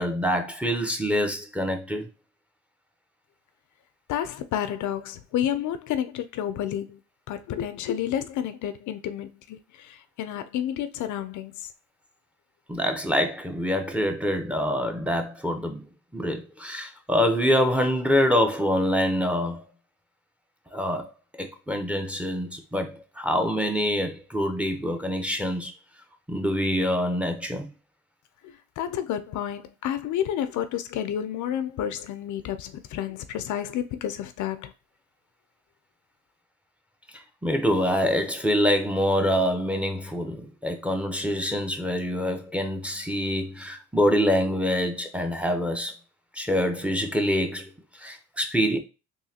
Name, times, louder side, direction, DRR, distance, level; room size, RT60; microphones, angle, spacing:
voice 1, 0.0-2.1 12.7-15.9 16.1-19.6 20.7-21.1 21.4-25.7 26.3-27.7 37.1-45.9 46.3-48.8, equal, 5° right, 0.7 m, -25 dB
voice 2, 4.1-7.0 7.3-11.7 28.4-34.7, left 10 dB, 75° left, 0.5 m, -30 dB
3.9 x 2.7 x 2.8 m
cardioid pair, 90°, 30 cm